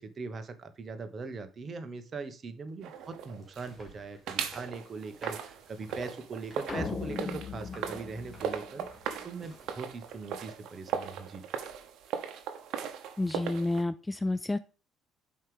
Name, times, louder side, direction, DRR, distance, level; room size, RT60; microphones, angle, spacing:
voice 1, 0.0-8.8 9.2-11.4, right 4 dB, 35° right, 9 dB, 1.1 m, -41 dB
sound 1, 2.7-10.5, equal, ahead, 2.7 m, -56 dB
sound 2, 2.8-3.9 4.3-13.8, right 8 dB, 70° right, 1.0 m, -39 dB
sound 3, 6.7-9.1, left 5 dB, 30° left, 1.0 m, -38 dB
voice 2, 13.2-14.6, left 2 dB, 15° left, 14 dB, 0.3 m, -30 dB
5.7 x 4.7 x 4.7 m, 0.34 s
cardioid pair, 110°, 0 cm